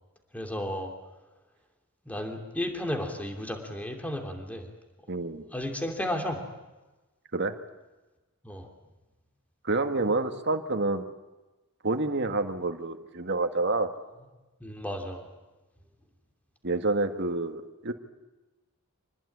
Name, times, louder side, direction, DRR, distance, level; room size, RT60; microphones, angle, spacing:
voice 1, 0.3-0.9 2.1-4.7 5.5-6.5 8.4-8.7 14.6-15.3, left 1 dB, 5° left, 4 dB, 2.8 m, -33 dB
voice 2, 5.1-5.5 7.3-7.6 9.6-11.0 11.8-13.9 16.6-17.9, right 2 dB, 50° right, 6 dB, 1.9 m, -28 dB
26.5 x 20.0 x 9.9 m, 1.1 s
head